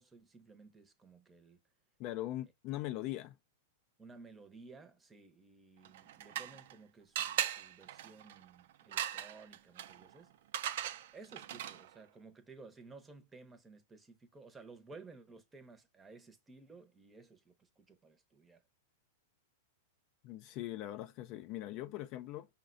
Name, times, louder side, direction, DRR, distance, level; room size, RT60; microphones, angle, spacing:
voice 1, 0.0-1.6 4.0-10.4 11.1-18.6, right 3 dB, 15° right, 0.7 m, -56 dB
voice 2, 2.0-3.3 20.2-22.5, left 15 dB, 45° left, 0.3 m, -41 dB
sound 1, 5.8-6.8 7.2-12.0, right 11 dB, 65° right, 0.4 m, -40 dB
5.3 x 2.2 x 2.5 m
hypercardioid pair, 115°, 0 cm